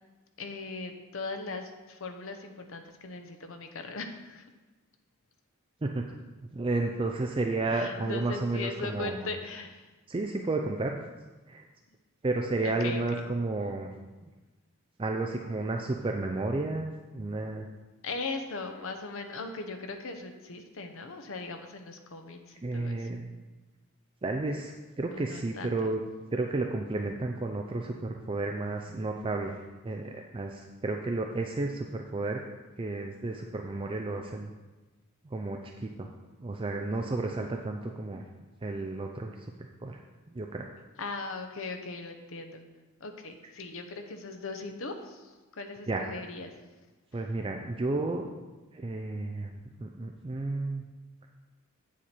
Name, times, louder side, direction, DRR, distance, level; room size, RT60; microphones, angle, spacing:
voice 1, 0.4-4.4 7.7-9.9 12.6-13.2 18.0-23.1 25.1-25.9 41.0-42.6 43.0-46.5, left 3 dB, 65° left, 6 dB, 0.9 m, -39 dB
voice 2, 6.5-9.3 10.1-11.0 11.5-11.7 12.2-13.9 15.0-17.7 22.6-23.3 24.2-26.0 26.3-32.4 32.8-34.5 35.3-36.1 36.4-38.2 38.6-39.5 39.8-40.0 40.3-40.7 45.9-46.2 47.1-48.3 48.7-50.9, right 2 dB, 25° right, 3 dB, 0.4 m, -32 dB
8.4 x 7.3 x 4.4 m, 1.2 s
head